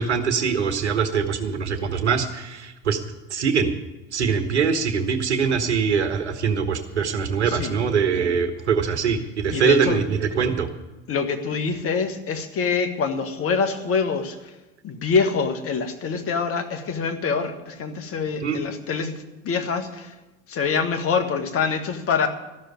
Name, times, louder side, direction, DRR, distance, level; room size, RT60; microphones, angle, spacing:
voice 1, 0.0-3.0 3.3-3.7 4.1-10.7 18.4-18.6, right 6 dB, 90° right, 8 dB, 1.3 m, -23 dB
voice 2, 9.5-10.0 11.1-14.4 14.8-19.1 19.4-20.1 20.5-22.3, left 5 dB, 40° left, 8 dB, 1.7 m, -25 dB
14.0 x 6.5 x 9.5 m, 1.1 s
hypercardioid pair, 80°, 33 cm